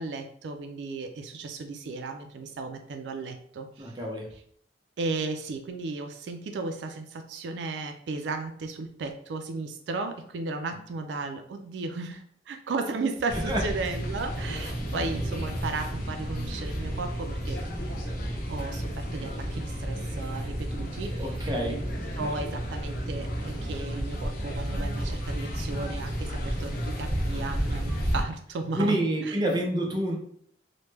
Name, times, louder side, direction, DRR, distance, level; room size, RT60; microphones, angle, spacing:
voice 1, 0.0-3.9 4.3-4.4 5.0-17.6 18.5-21.8 22.2-29.4, right 3 dB, 80° right, 6 dB, 0.4 m, -35 dB
voice 2, 3.8-4.3 13.5-13.6 21.2-21.8 28.8-30.2, right 1 dB, 25° right, 0 dB, 0.6 m, -27 dB
sound 1, 13.3-28.2, equal, 55° left, 0.8 m, -32 dB
3.0 x 2.1 x 3.3 m, 0.63 s
head